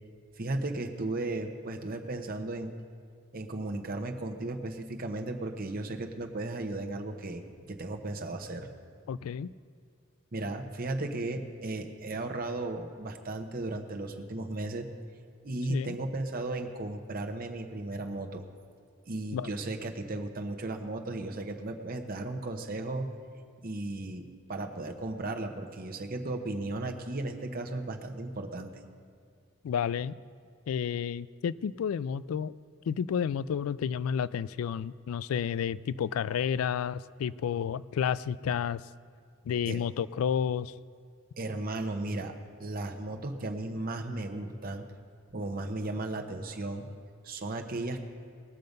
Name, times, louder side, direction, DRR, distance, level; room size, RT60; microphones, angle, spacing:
voice 1, 0.4-2.7 3.3-8.7 10.3-14.9 15.4-18.4 19.1-23.1 23.6-28.7 39.6-39.8 41.4-42.3 42.6-44.9 45.3-46.9 47.2-48.0, right 2 dB, 45° right, 4 dB, 0.9 m, -35 dB
voice 2, 9.1-9.5 15.7-16.0 19.3-19.5 29.6-30.1 30.7-32.5 32.9-38.8 39.5-40.7, left 8 dB, 85° left, 18 dB, 0.3 m, -31 dB
19.5 x 6.7 x 5.3 m, 2.2 s
head